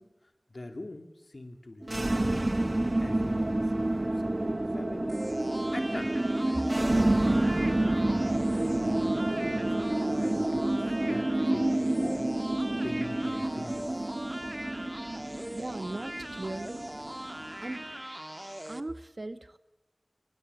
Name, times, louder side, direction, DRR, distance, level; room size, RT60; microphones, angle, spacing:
voice 1, 0.0-2.7 3.0-5.2 5.7-6.2 6.6-12.3 12.7-14.1, left 2 dB, 80° left, 6 dB, 2.8 m, -44 dB
sound 1, 1.8-17.9, right 1 dB, 50° right, 1.2 m, -29 dB
sound 2, 5.1-18.8, right 1 dB, 20° right, 1.7 m, -41 dB
voice 2, 15.5-16.9 17.6-17.8 18.6-19.6, right 2 dB, 70° right, 11 dB, 1.4 m, -38 dB
24.5 x 22.0 x 8.6 m, 0.89 s
wide cardioid pair, 40°, 0 cm